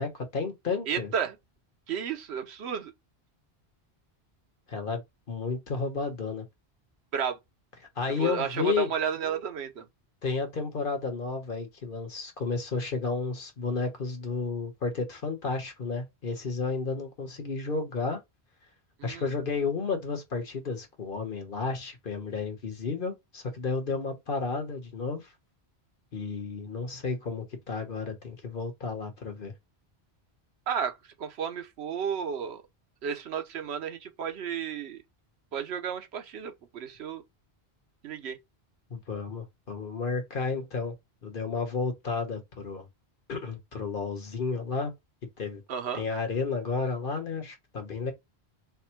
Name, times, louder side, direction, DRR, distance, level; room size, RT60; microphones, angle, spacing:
voice 1, 0.0-1.1 4.7-5.0 5.3-6.5 8.0-8.9 10.2-18.2 19.0-25.3 26.1-29.5 38.9-40.9 41.2-42.9 43.3-44.9 45.4-45.6 45.9-48.1, left 4 dB, 55° left, 1.2 m, -32 dB
voice 2, 0.9-1.3 1.9-2.9 7.1-7.4 8.2-9.9 19.0-19.3 30.7-32.6 33.0-35.0 35.5-37.2 38.0-38.4 45.7-46.0, right 7 dB, 85° right, 1.0 m, -32 dB
3.5 x 2.1 x 4.3 m
omnidirectional pair, 1.1 m